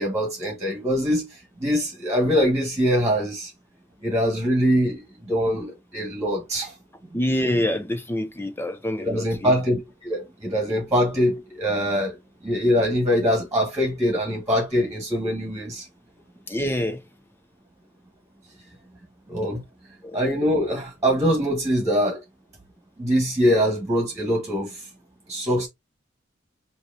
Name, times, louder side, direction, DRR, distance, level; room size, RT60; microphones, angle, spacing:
voice 1, 0.0-3.5 4.0-6.7 9.0-12.2 12.4-15.8 19.3-19.6 20.1-22.2 23.0-24.8 25.3-25.7, equal, 20° right, 1.6 m, -23 dB
voice 2, 7.1-9.5 16.5-17.0 20.0-20.2, left 1 dB, 10° left, 0.5 m, -26 dB
5.7 x 2.9 x 2.7 m
head